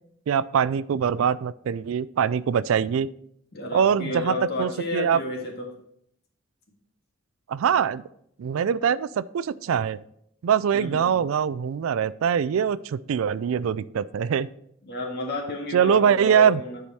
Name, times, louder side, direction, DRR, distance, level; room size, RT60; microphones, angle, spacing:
voice 1, 0.3-3.1 3.7-5.2 7.5-8.0 8.4-10.0 10.4-14.5 15.7-16.6, right 8 dB, 75° right, 18 dB, 0.3 m, -23 dB
voice 2, 3.5-5.7 10.7-11.2 14.8-16.8, left 2 dB, 55° left, 0 dB, 1.9 m, -31 dB
10.0 x 4.8 x 4.2 m, 0.71 s
head